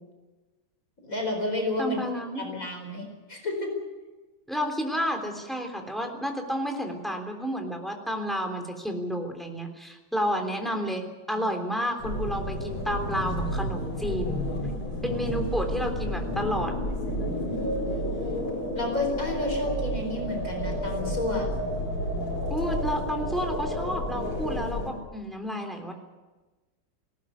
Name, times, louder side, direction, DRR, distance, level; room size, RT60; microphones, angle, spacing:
voice 1, 1.0-2.0 2.4-3.7 11.3-11.5 18.7-21.5, left 2 dB, 40° left, 3 dB, 4.9 m, -31 dB
voice 2, 1.8-2.4 4.5-14.4 15.0-16.7 22.5-25.9, equal, ahead, 3 dB, 3.4 m, -31 dB
sound 1, 12.0-24.9, equal, 85° left, 5.7 m, -30 dB
19.5 x 18.0 x 9.4 m, 1.2 s
omnidirectional pair, 2.3 m